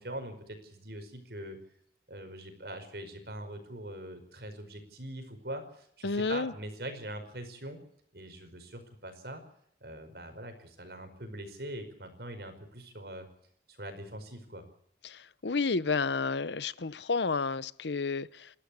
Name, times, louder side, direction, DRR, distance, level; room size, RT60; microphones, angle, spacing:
voice 1, 0.0-1.6 2.1-7.8 8.1-9.4 9.8-13.3 13.7-14.7, right 1 dB, 65° right, 5.1 m, -42 dB
voice 2, 6.0-6.5 15.0-18.5, left 4 dB, 85° left, 0.9 m, -31 dB
29.0 x 13.0 x 8.5 m
head